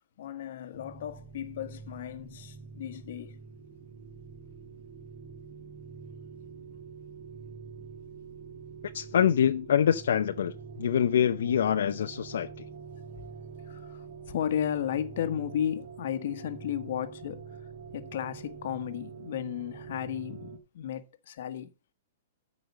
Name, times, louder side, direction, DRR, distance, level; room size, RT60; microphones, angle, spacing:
voice 1, 0.2-3.4 13.6-17.4 17.9-21.7, left 10 dB, 55° left, 1.4 m, -34 dB
sound 1, 0.7-20.6, right 5 dB, 40° right, 2.6 m, -45 dB
voice 2, 8.9-12.5, left 9 dB, 80° left, 0.7 m, -25 dB
13.0 x 5.5 x 5.4 m
hypercardioid pair, 175°, 0 cm